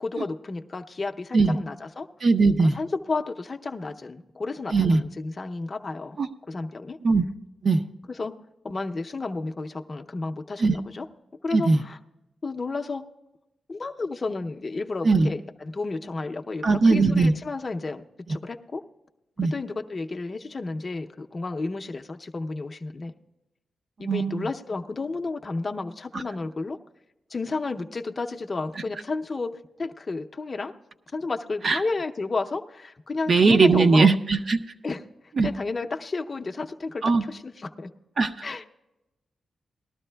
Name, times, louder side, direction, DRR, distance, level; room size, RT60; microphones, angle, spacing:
voice 1, 0.0-2.1 2.6-6.2 6.5-7.0 8.1-8.4 8.6-11.1 11.4-12.0 12.4-13.0 13.7-18.0 18.3-18.8 19.4-23.1 24.0-26.8 27.3-30.7 31.1-34.1 34.8-37.9 38.4-38.6, left 3 dB, 30° left, 5 dB, 0.6 m, -32 dB
voice 2, 2.2-2.8 4.7-5.0 6.2-6.3 7.0-7.3 7.6-7.8 10.6-10.8 11.5-11.8 15.0-15.3 16.6-17.3 19.4-19.5 24.0-24.4 26.1-26.2 31.6-31.8 33.3-34.6 35.4-35.5 37.0-37.2 38.2-38.3, right 4 dB, 45° right, 7 dB, 0.5 m, -19 dB
19.0 x 13.0 x 2.2 m, 0.99 s
wide cardioid pair, 155°, 0 cm